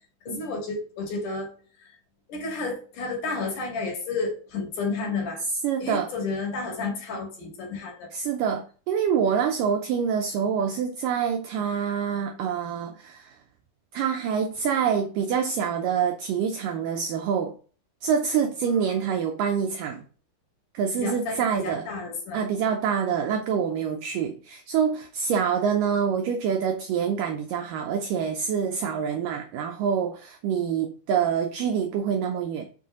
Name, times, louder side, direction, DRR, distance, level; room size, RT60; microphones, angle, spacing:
voice 1, 0.2-1.5 2.3-5.4 5.8-8.1 21.0-22.4, left 3 dB, 60° left, 3.2 m, -31 dB
voice 2, 5.6-6.1 8.1-13.4 13.9-17.5 18.0-20.0 20.7-21.9 22.3-32.6, right 7 dB, 80° right, 1.9 m, -26 dB
6.2 x 4.3 x 6.1 m
omnidirectional pair, 4.5 m